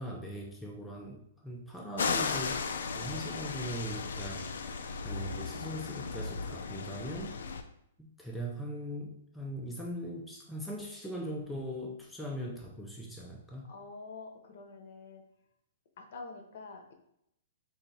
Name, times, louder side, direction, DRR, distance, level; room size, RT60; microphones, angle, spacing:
voice 1, 0.0-2.7 2.9-7.4 8.0-13.7, equal, ahead, -3 dB, 0.3 m, -40 dB
sound 1, 2.0-7.6, left 5 dB, 85° left, 0.4 m, -35 dB
voice 2, 13.6-15.2 16.0-16.9, left 4 dB, 50° left, 4 dB, 0.7 m, -46 dB
4.2 x 2.7 x 3.9 m, 0.76 s
hypercardioid pair, 175°, 0 cm